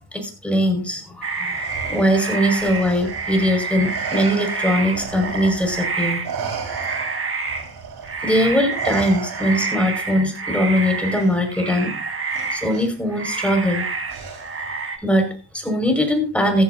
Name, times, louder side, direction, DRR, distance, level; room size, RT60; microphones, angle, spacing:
voice 1, 0.1-1.6 1.9-6.2 8.2-11.9 12.5-13.9 15.0-16.6, equal, 5° left, 3 dB, 5.9 m, -21 dB
sound 1, 1.2-6.4 6.6-7.7 8.0-12.9 13.1-15.0, right 4 dB, 35° right, 1.8 m, -28 dB
Respiratory sounds, 1.5-5.9 6.2-9.9 11.1-11.3 12.3-12.9 14.1-14.7, right 6 dB, 65° right, 5.0 m, -34 dB
16.0 x 14.0 x 2.8 m, 0.34 s
cardioid pair, 105°, 39 cm